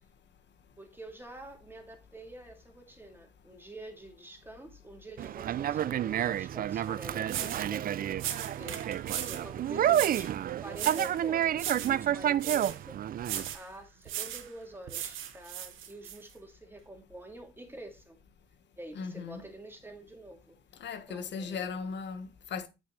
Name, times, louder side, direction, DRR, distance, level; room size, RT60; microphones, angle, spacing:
voice 1, 0.8-10.3 10.6-13.0 13.5-18.2 18.8-20.6 21.1-21.8, right 1 dB, 10° right, 2.5 m, -47 dB
Conversation, 5.2-13.6, right 11 dB, 50° right, 0.4 m, -30 dB
sound 1, 6.8-6.9 7.3-7.7 8.2-9.5 9.9-10.3 10.7-11.2 11.5-12.0 12.4-12.8 13.2-13.6 14.1-14.5 14.9-16.2, right 10 dB, 80° right, 1.1 m, -37 dB
voice 2, 18.9-19.4 20.8-22.7, left 5 dB, 65° left, 1.5 m, -37 dB
8.0 x 6.6 x 3.2 m
cardioid pair, 90°, 20 cm